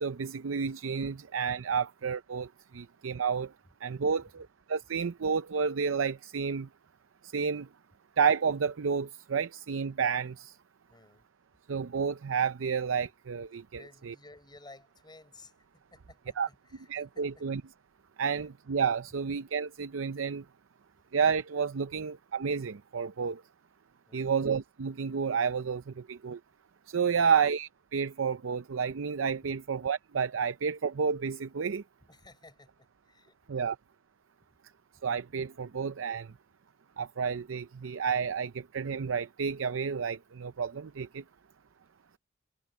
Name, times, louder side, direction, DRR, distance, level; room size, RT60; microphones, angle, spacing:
voice 1, 0.0-3.5 3.8-6.7 7.2-7.7 8.2-10.5 11.7-13.6 14.1-14.2 16.4-16.5 16.9-17.6 18.2-20.4 21.1-23.4 24.1-26.4 26.9-31.8 33.5-33.7 35.0-36.3 37.0-41.2, right 6 dB, 90° right, 0.5 m, -30 dB
voice 2, 4.0-4.3 10.9-11.3 13.7-17.5 18.3-18.5 24.0-24.4 27.1-27.4 29.4-29.5 32.0-33.8, left 2 dB, 20° left, 7.4 m, -56 dB
head